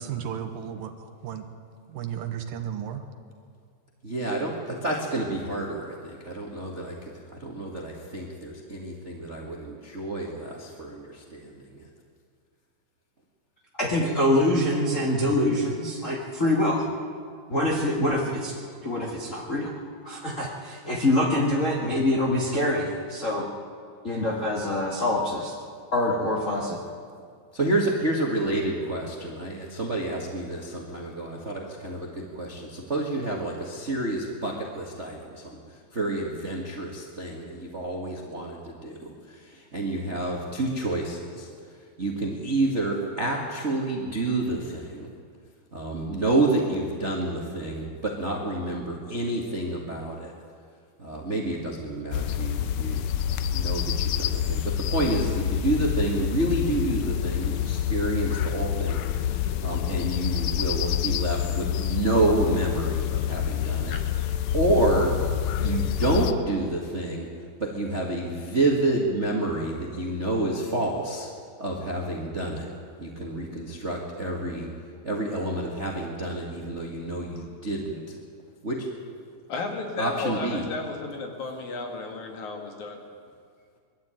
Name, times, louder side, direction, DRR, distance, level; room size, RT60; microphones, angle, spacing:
voice 1, 0.0-1.5 1.9-3.0, right 9 dB, 80° right, 6 dB, 3.0 m, -34 dB
voice 2, 4.0-11.9 27.5-35.6 35.9-41.5 42.0-45.1 45.7-50.3 51.0-63.9 64.5-65.1 65.6-67.3 67.6-71.3 71.6-72.7 73.0-74.7 75.0-78.0 78.6-78.8 80.0-80.6, right 2 dB, 30° right, -1 dB, 1.5 m, -29 dB
voice 3, 13.8-16.8 17.5-18.5 18.8-19.8 20.0-23.5 24.0-25.5 25.9-26.8, left 1 dB, 30° left, -2 dB, 1.5 m, -25 dB
sound 1, 52.1-66.3, left 10 dB, 80° left, 1.6 m, -27 dB
voice 4, 79.5-83.0, left 3 dB, 60° left, 3 dB, 3.3 m, -33 dB
21.0 x 13.5 x 9.1 m, 2.1 s
omnidirectional pair, 4.1 m